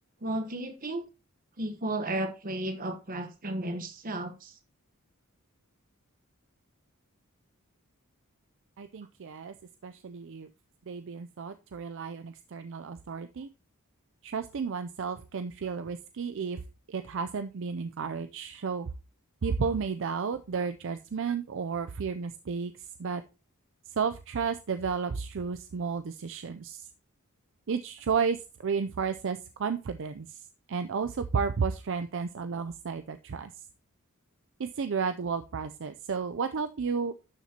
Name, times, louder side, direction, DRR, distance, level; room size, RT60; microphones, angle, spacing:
voice 1, 0.2-1.0 1.6-4.5, right 1 dB, 40° right, 7 dB, 1.1 m, -33 dB
voice 2, 8.8-9.5 9.8-10.5 10.9-13.5 14.2-16.6 16.9-18.9 19.4-22.7 23.0-23.2 24.0-26.9 27.7-30.4 30.7-33.5 34.6-37.1, right 5 dB, 60° right, 10 dB, 0.5 m, -32 dB
12.0 x 7.1 x 2.9 m, 0.31 s
head